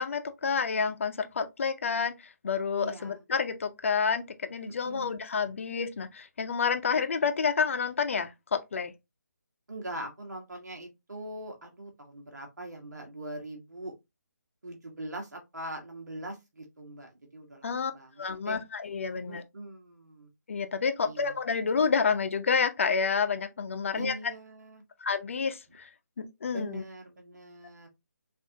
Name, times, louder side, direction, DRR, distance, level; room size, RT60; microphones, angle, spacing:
voice 1, 0.0-8.9 17.6-17.9 18.2-19.4 20.5-24.1 25.0-25.9 26.2-26.8, left 5 dB, 45° left, 0.7 m, -29 dB
voice 2, 2.8-3.2 4.6-5.2 9.7-13.9 14.6-18.6 19.2-20.3 21.0-21.3 23.9-24.8 26.5-27.9, right 1 dB, 70° right, 1.5 m, -42 dB
7.0 x 2.7 x 2.8 m
figure-of-eight pair, 150°, 10 cm